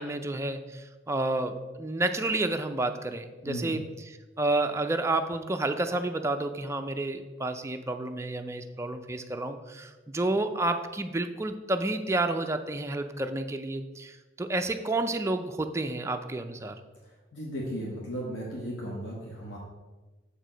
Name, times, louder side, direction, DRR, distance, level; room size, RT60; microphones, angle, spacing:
voice 1, 0.0-3.8 4.4-16.7, right 2 dB, 15° right, 6 dB, 0.4 m, -30 dB
voice 2, 3.4-3.8 17.0-19.6, equal, 80° left, -3 dB, 1.3 m, -36 dB
7.1 x 4.7 x 5.0 m, 1.2 s
head